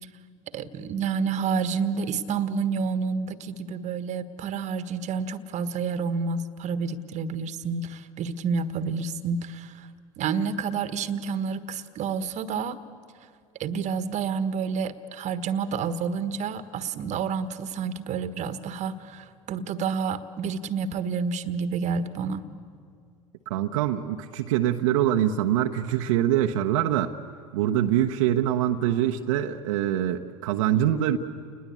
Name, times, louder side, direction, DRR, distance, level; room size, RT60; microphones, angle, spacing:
voice 1, 0.5-9.9 10.2-12.8 13.6-22.4, right 5 dB, 45° right, 12 dB, 1.4 m, -29 dB
voice 2, 23.5-27.1 27.5-31.2, right 11 dB, 70° right, 3 dB, 1.0 m, -24 dB
29.5 x 20.5 x 8.5 m, 2.2 s
hypercardioid pair, 80°, 17 cm